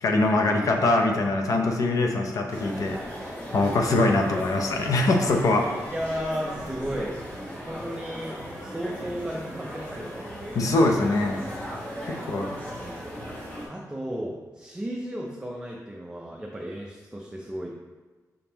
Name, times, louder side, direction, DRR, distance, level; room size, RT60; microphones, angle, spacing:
voice 1, 0.0-3.0 3.5-5.7 10.5-11.4 12.1-12.5, left 2 dB, 60° left, 2 dB, 0.6 m, -23 dB
sound 1, 2.5-13.7, equal, 20° left, 1.2 m, -37 dB
voice 2, 3.8-4.2 5.9-7.2 7.6-10.3 12.2-12.3 13.7-17.7, equal, 10° right, -1 dB, 0.4 m, -34 dB
5.2 x 3.5 x 2.9 m, 1.3 s
wide cardioid pair, 115°, 7 cm